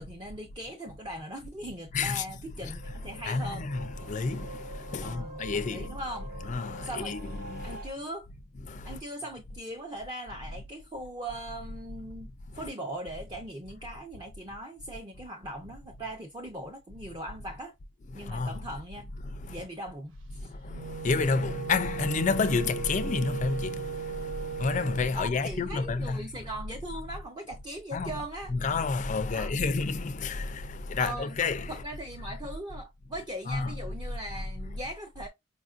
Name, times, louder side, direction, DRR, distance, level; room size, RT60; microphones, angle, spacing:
voice 1, 0.0-3.7 5.0-6.3 6.8-7.1 7.6-8.3 8.8-12.3 12.5-17.7 18.1-19.1 19.5-20.5 25.1-28.5 29.3-29.7 31.0-31.4 31.7-35.3, right 1 dB, 20° right, 0.6 m, -40 dB
voice 2, 1.9-2.3 2.6-2.8 3.3-6.0 6.4-7.8 8.6-9.0 18.1-18.6 19.2-19.6 20.4-26.3 27.9-28.1 28.5-31.8 33.5-33.7, left 4 dB, 35° left, 0.4 m, -30 dB
sound 1, 2.8-7.9, right 1 dB, 45° right, 0.9 m, -45 dB
Wind instrument woodwind instrument, 20.6-25.1, right 6 dB, 60° right, 0.5 m, -37 dB
5.0 x 2.5 x 2.4 m
head